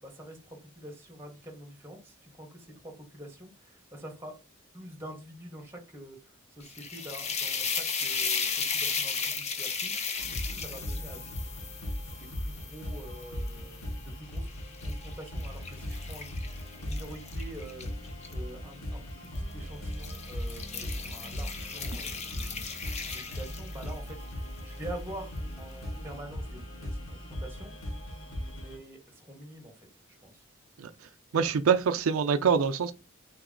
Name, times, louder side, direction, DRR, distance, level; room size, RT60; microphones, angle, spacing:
voice 1, 0.0-4.3 4.7-11.2 12.2-14.5 14.8-17.9 18.3-22.7 23.1-26.6 27.1-27.8 28.2-29.9 30.2-30.4, right 1 dB, 10° right, 1.1 m, -46 dB
sound 1, 6.6-13.8 14.4-18.3 19.2-19.5 19.9-24.1, left 5 dB, 30° left, 0.6 m, -35 dB
sound 2, 10.2-28.8, left 1 dB, 80° left, 1.6 m, -38 dB
voice 2, 31.3-32.9, right 6 dB, 85° right, 0.4 m, -25 dB
4.1 x 2.9 x 3.7 m
head